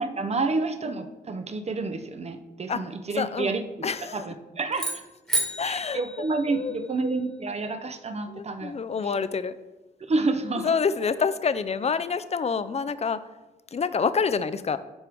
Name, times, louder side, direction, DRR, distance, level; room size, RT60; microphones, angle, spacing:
voice 1, 0.0-3.6 4.1-4.9 5.6-8.8 9.0-9.1 10.1-10.8, right 3 dB, 35° right, 9 dB, 0.6 m, -29 dB
voice 2, 3.2-3.6 3.8-4.2 5.6-6.0 6.5-7.1 8.3-9.6 10.6-13.2 13.7-14.8, left 5 dB, 35° left, 13 dB, 0.4 m, -27 dB
sound 1, 4.7-7.1, right 1 dB, ahead, 1.3 m, -32 dB
10.5 x 4.6 x 3.5 m, 1.1 s
cardioid pair, 80°, 19 cm